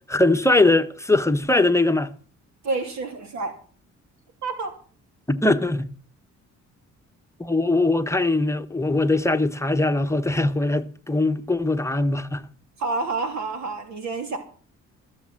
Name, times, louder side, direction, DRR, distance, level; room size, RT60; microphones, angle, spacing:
voice 1, 0.1-2.1 5.3-5.9 7.4-12.4, left 2 dB, 10° left, 1.1 m, -21 dB
voice 2, 2.6-3.5 4.4-4.7 12.8-14.4, right 3 dB, 65° right, 3.1 m, -28 dB
17.0 x 7.3 x 7.6 m
cardioid pair, 90°, 30 cm